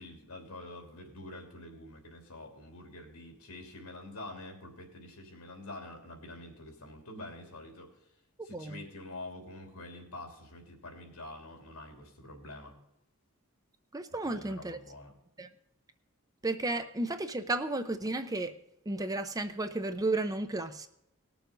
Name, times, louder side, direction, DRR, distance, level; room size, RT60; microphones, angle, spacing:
voice 1, 0.0-7.9 8.4-12.7 14.2-15.1, left 2 dB, 80° left, 2.9 m, -46 dB
voice 2, 13.9-14.8 15.4-15.5 16.4-18.6 18.9-20.9, right 2 dB, 15° right, 0.6 m, -33 dB
19.0 x 7.0 x 3.8 m
head